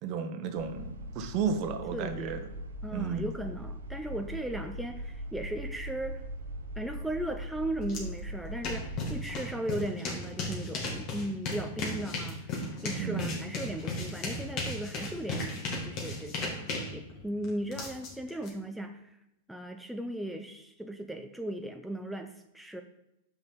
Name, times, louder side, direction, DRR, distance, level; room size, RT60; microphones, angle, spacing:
voice 1, 0.0-2.4 2.9-3.3 13.0-13.4, right 6 dB, 45° right, 7 dB, 1.0 m, -33 dB
sound 1, 0.6-9.3, equal, 80° right, 0.9 m, -40 dB
voice 2, 1.9-2.3 2.8-6.2 6.8-19.2 19.5-22.8, right 1 dB, ahead, 4 dB, 0.6 m, -37 dB
sound 2, 7.9-8.0 8.3-18.5, left 2 dB, 45° left, 2.1 m, -35 dB
6.2 x 5.4 x 5.2 m, 0.85 s
hypercardioid pair, 110°, 0 cm